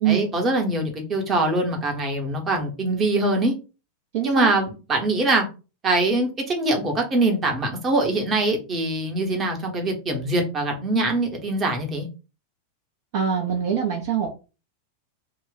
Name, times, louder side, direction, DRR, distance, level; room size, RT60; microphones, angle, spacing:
voice 1, 0.1-3.5 4.2-5.5 5.8-12.1, right 2 dB, 25° right, 2 dB, 0.9 m, -23 dB
voice 2, 4.1-4.5 13.1-14.3, right 8 dB, 50° right, 2 dB, 0.5 m, -23 dB
2.4 x 2.1 x 3.9 m, 0.32 s
figure-of-eight pair, 90°, 0 cm